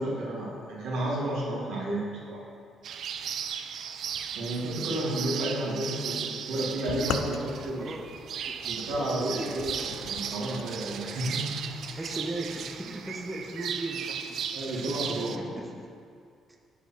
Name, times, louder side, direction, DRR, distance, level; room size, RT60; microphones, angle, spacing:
voice 1, 0.0-2.4 4.4-7.8 8.6-11.5 14.5-15.4, right 1 dB, 90° right, -5 dB, 2.3 m, -31 dB
sound 1, 2.8-15.4, right 8 dB, 70° right, 0.4 m, -36 dB
sound 2, 6.9-10.7, left 9 dB, 80° left, 0.3 m, -38 dB
voice 2, 7.8-8.1 8.4-9.6 11.9-14.4 14.7-15.9, right 2 dB, 10° right, 0 dB, 0.9 m, -38 dB
6.9 x 6.1 x 5.7 m, 2.3 s
cardioid pair, 90°, 0 cm